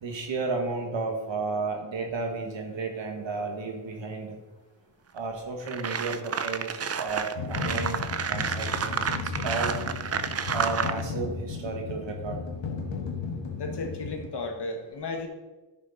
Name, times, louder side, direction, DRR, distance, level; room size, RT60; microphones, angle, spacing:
voice 1, 0.0-4.4 5.1-9.1 9.4-9.7 10.5-12.4, right 3 dB, 85° right, 2 dB, 1.5 m, -33 dB
sound 1, 5.2-5.3 5.7-11.0, right 6 dB, 35° right, 0.5 m, -30 dB
sound 2, 7.4-14.3, left 4 dB, 90° left, 1.3 m, -34 dB
voice 2, 13.6-15.3, left 3 dB, 65° left, 4 dB, 1.5 m, -34 dB
11.0 x 6.4 x 4.0 m, 1.2 s
wide cardioid pair, 90°, 44 cm